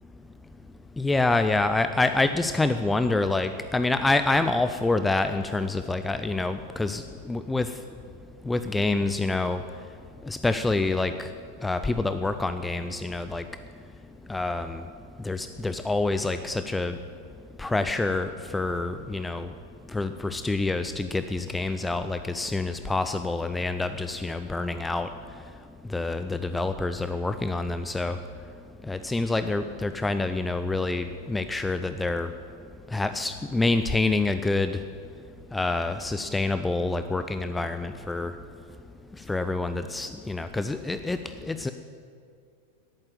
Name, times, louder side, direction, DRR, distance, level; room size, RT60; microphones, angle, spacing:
voice 1, 1.0-7.0 7.3-7.7 8.5-9.6 10.3-11.1 11.6-13.4 14.3-14.8 15.3-17.0 17.6-19.5 19.9-25.1 25.9-28.2 28.9-32.3 32.9-34.8 35.5-38.3 39.3-41.2 41.5-41.7, left 2 dB, 10° left, 10 dB, 0.5 m, -27 dB
10.5 x 8.9 x 9.1 m, 2.3 s
figure-of-eight pair, 90°, 0 cm